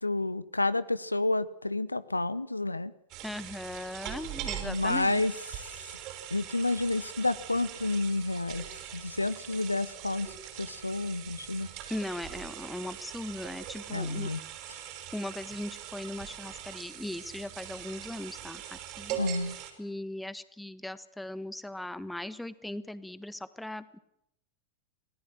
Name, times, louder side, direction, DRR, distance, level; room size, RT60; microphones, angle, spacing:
voice 1, 0.0-2.9 4.6-5.3 6.3-8.6 8.9-11.7 13.9-14.4 19.2-19.6, left 2 dB, 85° left, 17 dB, 0.9 m, -30 dB
sound 1, 3.1-19.7, right 10 dB, 40° right, 5.6 m, -42 dB
voice 2, 3.2-5.2 11.9-14.3 15.1-19.2 19.4-24.0, left 1 dB, 5° left, 15 dB, 1.4 m, -39 dB
26.5 x 18.5 x 7.5 m, 0.78 s
figure-of-eight pair, 90°, 0 cm